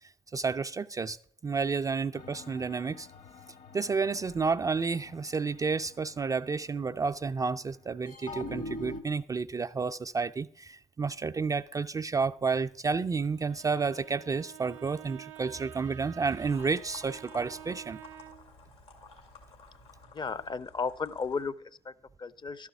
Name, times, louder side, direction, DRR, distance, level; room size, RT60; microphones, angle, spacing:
voice 1, 0.3-1.2 1.4-3.1 3.7-18.0, right 4 dB, 20° right, 0.3 m, -31 dB
sound 1, 2.1-7.3 8.1-9.0, left 2 dB, 55° left, 1.1 m, -45 dB
Bowed string instrument, 13.2-18.6, right 12 dB, 85° right, 0.5 m, -49 dB
sound 2, 16.5-21.5, left 3 dB, 85° left, 2.3 m, -53 dB
voice 2, 20.1-22.7, left 5 dB, 30° left, 0.5 m, -35 dB
12.5 x 4.9 x 6.9 m
hypercardioid pair, 55°, 15 cm